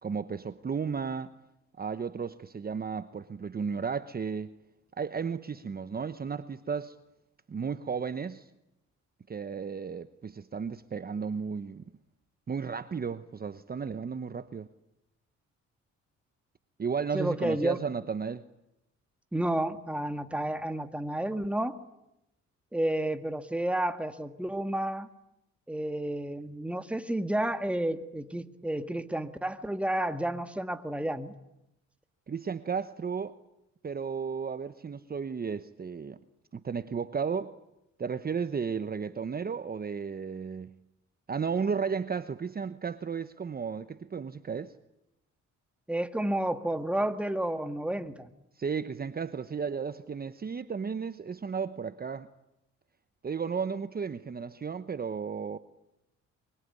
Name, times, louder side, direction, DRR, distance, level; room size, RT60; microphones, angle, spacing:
voice 1, 0.0-1.3 1.8-4.5 5.0-7.0 7.5-8.5 9.3-11.8 12.5-14.7 16.8-18.4 32.3-33.4 33.8-36.2 36.5-37.6 38.0-40.7 41.3-44.7 48.6-52.3 53.2-55.6, right 6 dB, 30° right, 1.0 m, -34 dB
voice 2, 17.1-17.8 19.3-21.8 22.7-25.1 25.7-31.3 45.9-48.3, right 1 dB, 5° right, 1.7 m, -31 dB
24.0 x 24.0 x 9.7 m
cardioid pair, 90°, 30 cm